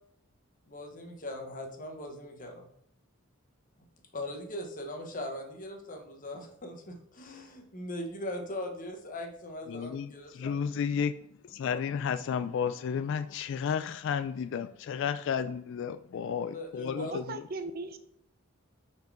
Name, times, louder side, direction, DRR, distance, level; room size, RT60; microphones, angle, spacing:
voice 1, 0.7-2.7 4.1-10.6 11.7-11.8 16.5-17.1, left 1 dB, 40° left, 4 dB, 1.2 m, -40 dB
voice 2, 9.7-11.1 11.5-17.4, left 7 dB, 60° left, 12 dB, 0.3 m, -32 dB
voice 3, 17.0-18.0, right 3 dB, 45° right, 10 dB, 0.6 m, -38 dB
6.7 x 4.5 x 4.8 m, 0.69 s
head